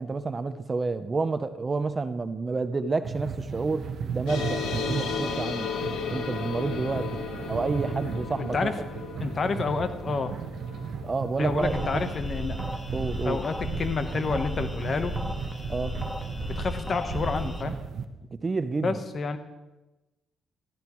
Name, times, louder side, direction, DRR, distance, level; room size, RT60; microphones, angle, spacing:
voice 1, 0.0-3.9 4.1-5.7 6.1-7.1 7.4-8.7 11.0-12.0 12.9-13.4 15.7-15.9 18.3-19.0, right 3 dB, 30° right, 11 dB, 0.7 m, -29 dB
sound 1, 3.0-18.0, right 6 dB, 60° right, 1.0 m, -36 dB
sound 2, 4.3-15.2, left 5 dB, 85° left, 1.6 m, -36 dB
voice 2, 8.4-8.8 9.2-10.3 11.4-12.6 13.2-15.1 16.5-17.8 18.8-19.4, left 4 dB, 45° left, 9 dB, 1.1 m, -29 dB
sound 3, 11.6-17.6, left 1 dB, 10° left, 1.4 m, -35 dB
14.0 x 13.5 x 3.1 m, 1.1 s
cardioid pair, 90°, 0 cm